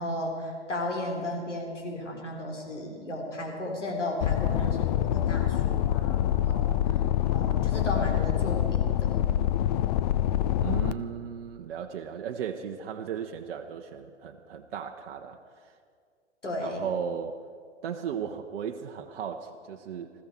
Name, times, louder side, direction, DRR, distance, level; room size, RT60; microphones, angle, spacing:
voice 1, 0.0-6.7 7.3-9.3 16.4-16.8, left 1 dB, 85° left, 0 dB, 3.6 m, -34 dB
sound 1, 4.2-10.9, left 12 dB, 35° left, 0.5 m, -26 dB
voice 2, 10.6-15.8 16.6-17.4 17.8-20.1, right 7 dB, 55° right, 3 dB, 0.9 m, -36 dB
21.0 x 14.5 x 4.5 m, 2.2 s
figure-of-eight pair, 115°, 35 cm